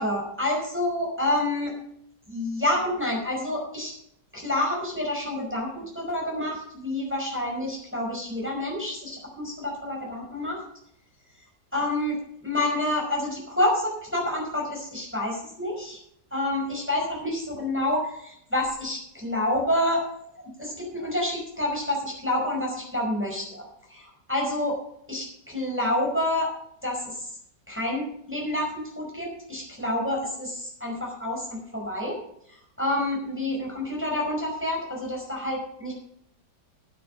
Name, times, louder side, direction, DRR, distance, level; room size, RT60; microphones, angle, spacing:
voice 1, 0.0-1.7 2.3-3.9 4.3-10.6 11.7-12.2 12.4-16.0 16.3-20.0 20.6-24.8 25.1-26.5 26.8-27.3 27.7-32.2 32.8-35.9, left 1 dB, 5° right, -3 dB, 5.4 m, -28 dB
12.0 x 11.0 x 5.4 m, 0.70 s
omnidirectional pair, 2.0 m